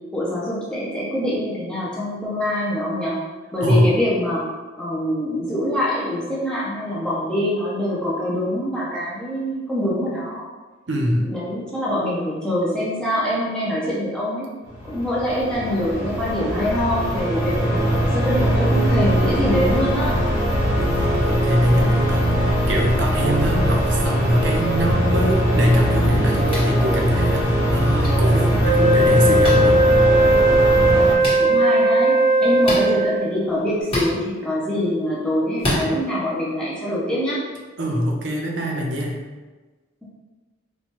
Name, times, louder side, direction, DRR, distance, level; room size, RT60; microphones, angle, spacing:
voice 1, 0.1-3.2 3.5-4.4 4.8-10.5 11.3-14.5 14.8-20.1 30.7-37.4, equal, 5° left, -7 dB, 0.5 m, -24 dB
voice 2, 10.9-11.3 20.8-29.8 37.8-39.2, equal, 65° right, 0 dB, 0.6 m, -22 dB
sound 1, 14.7-31.2, equal, 15° right, 0.8 m, -21 dB
sound 2, 26.5-26.7 28.0-28.1 29.4-29.6 31.2-31.4 32.6-32.8 33.9-34.1 35.6-35.8, left 1 dB, 30° left, 1.1 m, -25 dB
Wind instrument woodwind instrument, 28.6-33.3, right 1 dB, 55° left, 0.8 m, -17 dB
4.3 x 2.2 x 2.9 m, 1.3 s
head